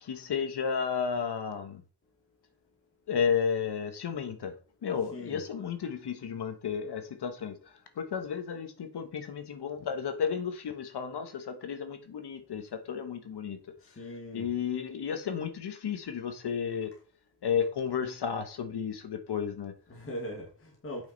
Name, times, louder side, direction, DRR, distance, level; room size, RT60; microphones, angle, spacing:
voice 1, 0.0-1.8 3.1-4.5 4.8-13.6 14.3-16.9 17.4-19.7, left 7 dB, 65° left, 1.4 m, -33 dB
voice 2, 5.1-5.4 13.8-14.5 19.9-21.1, equal, 30° left, 1.9 m, -40 dB
8.7 x 5.4 x 4.1 m
wide cardioid pair, 170°, 43 cm